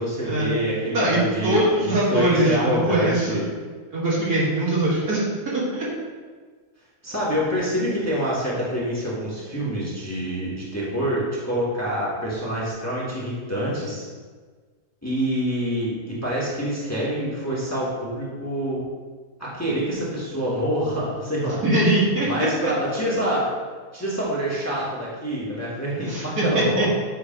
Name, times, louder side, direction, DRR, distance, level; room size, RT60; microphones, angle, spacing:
voice 1, 0.0-3.5 7.0-14.0 15.0-18.8 19.4-21.6 22.2-23.5 23.9-26.9, equal, 10° left, -6 dB, 1.3 m, -26 dB
voice 2, 0.9-3.4 3.9-5.6 21.6-22.3 26.1-26.9, right 1 dB, 75° right, -8 dB, 2.6 m, -22 dB
8.1 x 3.2 x 5.2 m, 1.5 s
omnidirectional pair, 1.6 m